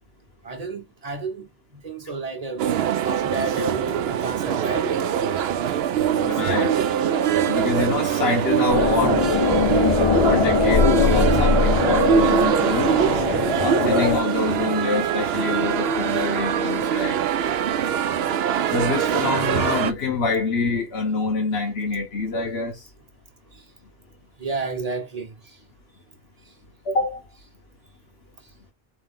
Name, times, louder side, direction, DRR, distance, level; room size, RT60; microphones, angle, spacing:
voice 1, 0.4-2.7 3.0-5.1 6.1-6.4 7.1-7.3 18.6-18.7 24.4-25.3, right 3 dB, 40° right, 1.0 m, -31 dB
sound 1, 2.6-19.9, right 8 dB, 80° right, 0.8 m, -23 dB
voice 2, 6.3-6.8 7.5-9.4 10.2-12.9 13.6-17.2 18.7-22.9 26.8-27.2, left 4 dB, 85° left, 1.2 m, -26 dB
sound 2, 8.7-14.2, left 6 dB, 45° left, 0.4 m, -21 dB
4.2 x 3.3 x 3.6 m
omnidirectional pair, 1.0 m